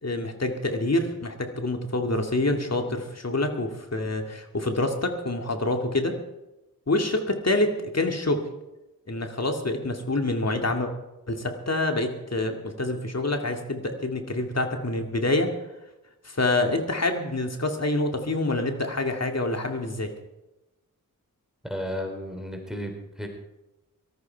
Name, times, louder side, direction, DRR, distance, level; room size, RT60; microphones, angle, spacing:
voice 1, 0.0-6.2 6.9-8.4 9.1-10.9 11.3-15.5 16.2-20.1, left 2 dB, 45° left, 4 dB, 2.3 m, -26 dB
voice 2, 21.6-23.3, equal, ahead, 3 dB, 3.5 m, -33 dB
18.5 x 13.0 x 4.6 m, 0.99 s
cardioid pair, 40°, 35 cm